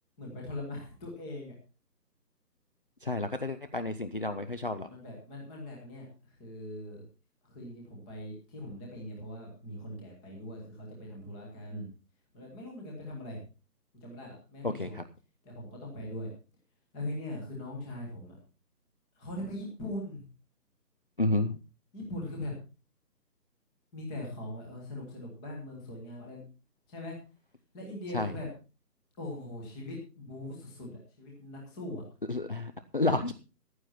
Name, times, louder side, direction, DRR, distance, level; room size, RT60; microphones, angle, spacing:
voice 1, 0.2-1.5 4.8-7.0 7.5-11.9 12.3-13.4 13.9-15.0 15.4-16.3 16.9-18.4 19.2-20.2 21.9-22.5 23.9-26.4 26.9-27.2 27.7-28.5 29.2-32.0, left 1 dB, 5° left, -1 dB, 1.0 m, -41 dB
voice 2, 3.0-4.9 14.6-15.0 21.2-21.6 28.1-28.3 32.3-33.3, left 2 dB, 35° left, 10 dB, 0.6 m, -30 dB
14.5 x 11.5 x 4.2 m, 0.33 s
figure-of-eight pair, 160°, 49 cm